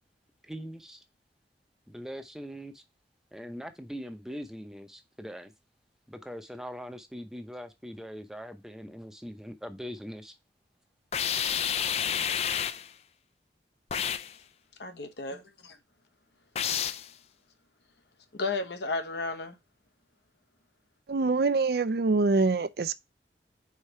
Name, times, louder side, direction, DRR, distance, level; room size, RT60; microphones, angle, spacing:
voice 1, 0.4-1.0 1.9-2.8 3.3-5.5 6.1-10.3, equal, 5° right, 0.7 m, -41 dB
sound 1, 11.1-12.9 13.9-14.3 16.6-17.1, left 8 dB, 35° left, 0.3 m, -29 dB
voice 2, 14.8-15.8 18.3-19.6, left 3 dB, 75° left, 1.1 m, -33 dB
voice 3, 21.1-22.9, right 3 dB, 60° right, 0.4 m, -25 dB
5.0 x 4.2 x 5.5 m
head